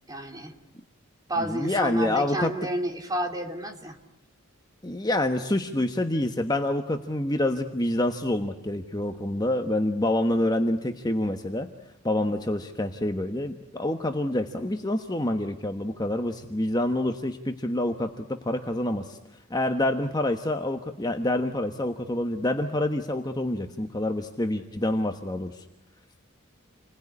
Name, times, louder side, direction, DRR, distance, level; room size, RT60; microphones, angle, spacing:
voice 1, 0.1-0.5 1.3-4.0, right 1 dB, 20° right, 3 dB, 3.0 m, -31 dB
voice 2, 1.4-2.5 4.8-11.7 12.0-19.2 19.5-25.6, left 1 dB, 20° left, 6 dB, 1.2 m, -27 dB
29.5 x 21.0 x 9.8 m, 0.86 s
head